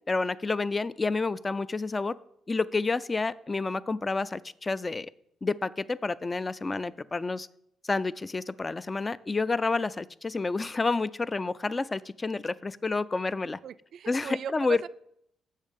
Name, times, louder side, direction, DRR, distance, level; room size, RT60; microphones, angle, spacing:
voice 1, 0.1-2.1 2.5-5.1 5.4-7.5 7.8-13.6 14.1-14.8, left 3 dB, 25° left, 17 dB, 0.3 m, -29 dB
voice 2, 13.6-14.9, right 8 dB, 65° right, 15 dB, 0.3 m, -38 dB
7.2 x 6.4 x 5.2 m, 0.74 s
cardioid pair, 90°, 0 cm